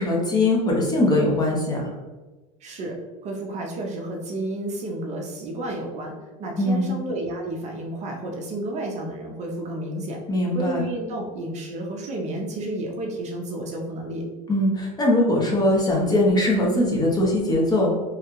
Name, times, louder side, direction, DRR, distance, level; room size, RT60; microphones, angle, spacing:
voice 1, 0.0-1.9 6.6-6.9 10.3-10.8 14.5-18.0, left 1 dB, 20° left, -3 dB, 0.8 m, -21 dB
voice 2, 2.6-10.2 10.5-14.2, right 1 dB, 35° right, 0 dB, 0.6 m, -31 dB
3.2 x 2.3 x 3.0 m, 1.2 s
supercardioid pair, 120°, 20 cm